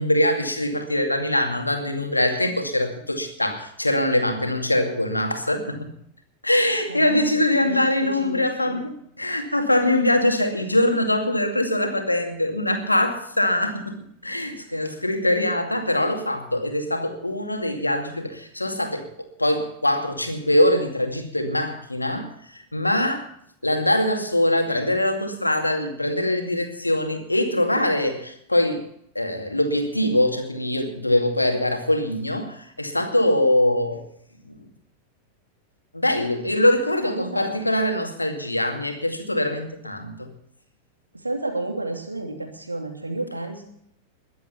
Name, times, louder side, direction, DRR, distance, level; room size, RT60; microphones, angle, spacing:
voice 1, 0.0-5.9 6.4-14.0 14.2-19.1 19.4-23.3 23.6-28.8 29.1-34.0 34.5-34.6 35.9-40.3, left 1 dB, 85° left, 5 dB, 2.3 m, -23 dB
voice 2, 6.9-8.8 14.7-14.8 37.0-37.5 41.2-43.6, right 2 dB, 80° right, 3 dB, 3.0 m, -32 dB
21.5 x 8.3 x 5.7 m, 0.70 s
figure-of-eight pair, 90°, 0 cm